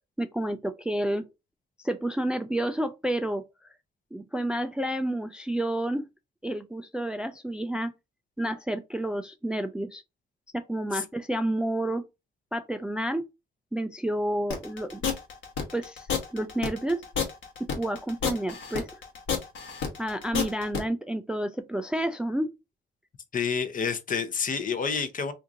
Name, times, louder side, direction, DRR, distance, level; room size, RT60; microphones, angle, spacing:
voice 1, 0.2-1.2 1.8-3.4 4.1-6.0 6.4-7.9 8.4-10.0 10.5-12.0 12.5-13.2 13.7-15.0 15.7-16.1 16.3-17.0 17.6-18.9 20.0-22.5, right 1 dB, 5° right, 0.3 m, -30 dB
sound 1, 14.5-20.8, left 6 dB, 70° left, 1.1 m, -30 dB
voice 2, 23.3-25.3, left 6 dB, 40° left, 0.7 m, -29 dB
2.8 x 2.5 x 3.6 m
cardioid pair, 90°, 20 cm